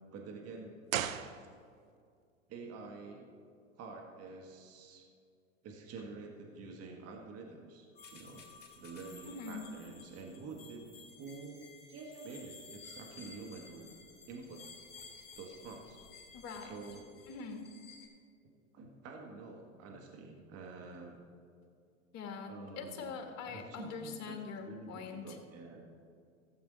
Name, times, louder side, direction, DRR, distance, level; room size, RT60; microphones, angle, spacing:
voice 1, 0.1-1.0 2.5-3.3 3.8-5.0 5.6-7.9 8.1-8.4 8.8-10.9 11.2-11.6 11.9-13.9 14.3-14.6 15.4-16.0 16.6-17.1 18.7-21.2 22.5-23.1 23.5-24.4 24.6-25.8, right 4 dB, 40° right, 1 dB, 1.5 m, -48 dB
sound 1, 0.9-2.0 2.2-2.3, right 10 dB, 85° right, 0.7 m, -37 dB
sound 2, 8.0-18.1, left 4 dB, 25° left, 2.6 m, -54 dB
voice 2, 9.3-9.6 16.3-16.8 17.3-17.7 22.1-25.4, left 5 dB, 40° left, 4 dB, 1.7 m, -43 dB
15.5 x 7.8 x 3.9 m, 2.3 s
hypercardioid pair, 100°, 39 cm